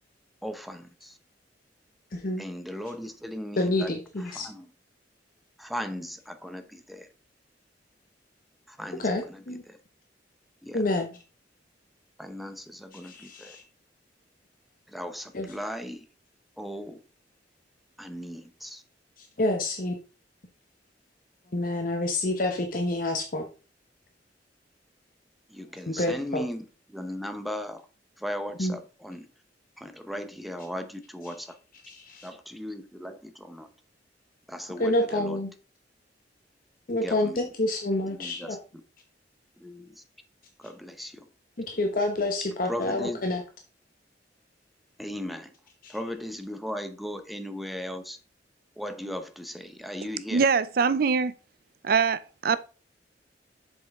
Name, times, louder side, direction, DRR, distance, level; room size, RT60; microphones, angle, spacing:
voice 1, 0.4-1.2 2.4-3.9 4.2-4.7 5.6-7.1 8.7-9.8 10.6-10.8 12.2-13.6 14.9-16.0 16.6-17.0 18.0-18.8 25.5-27.8 28.2-29.3 29.8-31.6 32.2-33.7 34.5-35.4 37.0-37.5 38.1-38.6 39.6-40.0 40.6-41.3 42.7-43.2 45.0-45.5 45.9-48.2 48.8-50.5, equal, ahead, 0.7 m, -37 dB
voice 2, 2.1-2.4 3.6-4.5 9.0-9.6 10.7-11.2 13.0-13.6 15.3-15.5 19.2-19.9 21.5-23.4 25.9-26.4 28.6-28.7 31.8-32.3 34.8-35.5 36.9-38.6 41.6-43.4 45.8-46.0, left 2 dB, 50° left, 0.9 m, -28 dB
voice 3, 50.3-51.3 51.8-52.6, right 5 dB, 55° right, 0.5 m, -23 dB
7.4 x 5.5 x 3.5 m
head